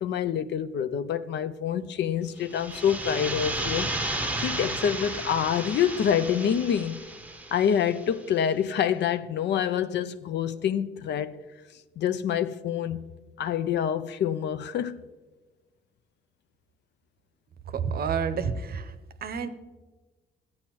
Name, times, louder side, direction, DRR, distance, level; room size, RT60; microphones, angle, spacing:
voice 1, 0.0-3.9 4.3-7.0 7.5-11.4 12.0-13.1 13.4-15.0, left 8 dB, 60° left, 0.5 m, -27 dB
sound 1, 2.4-8.1, right 1 dB, 5° right, 0.7 m, -33 dB
voice 2, 17.7-18.9 19.2-19.5, right 6 dB, 50° right, 0.7 m, -29 dB
14.0 x 8.5 x 3.0 m
cardioid pair, 90°, 20 cm